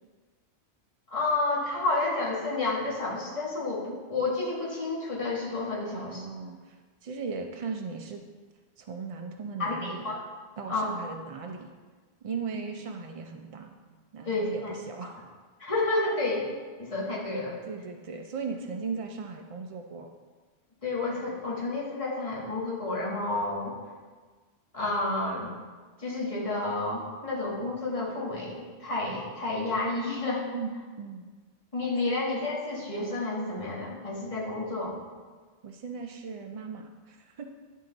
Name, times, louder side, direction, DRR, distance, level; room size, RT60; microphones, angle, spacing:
voice 1, 1.1-6.2 9.6-10.2 10.7-10.9 14.2-14.7 15.0-15.1 15.6-16.5 16.8-17.6 20.8-23.7 24.7-25.5 26.0-30.5 31.7-34.9, left 2 dB, 30° left, -6 dB, 1.6 m, -30 dB
voice 2, 5.9-8.2 8.8-10.2 10.6-11.7 12.2-13.8 14.1-15.1 17.7-20.1 30.5-30.7 31.0-31.3 35.6-37.5, right 5 dB, 60° right, 3 dB, 0.3 m, -37 dB
10.5 x 3.7 x 3.9 m, 1.4 s
omnidirectional pair, 1.1 m